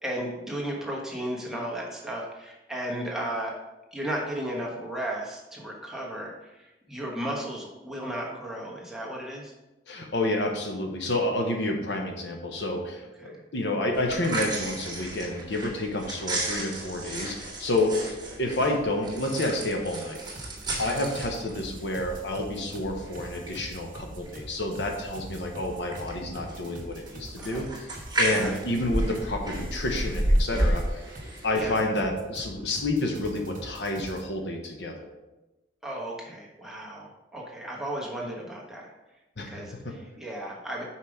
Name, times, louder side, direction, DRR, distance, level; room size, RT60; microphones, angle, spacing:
voice 1, 0.0-3.6 3.9-9.5 13.2-13.4 20.8-21.1 27.4-27.7 28.3-28.6 31.5-31.8 35.8-38.9 39.5-40.8, right 1 dB, ahead, -3 dB, 1.2 m, -35 dB
voice 2, 9.9-20.2 20.8-31.0 31.4-35.1 39.4-40.0, left 1 dB, 70° left, 3 dB, 1.0 m, -29 dB
sound 1, 13.9-31.8, right 1 dB, 25° right, 1.8 m, -32 dB
sound 2, 20.2-34.2, right 1 dB, 50° right, 1.1 m, -44 dB
5.7 x 4.8 x 5.0 m, 1.0 s
head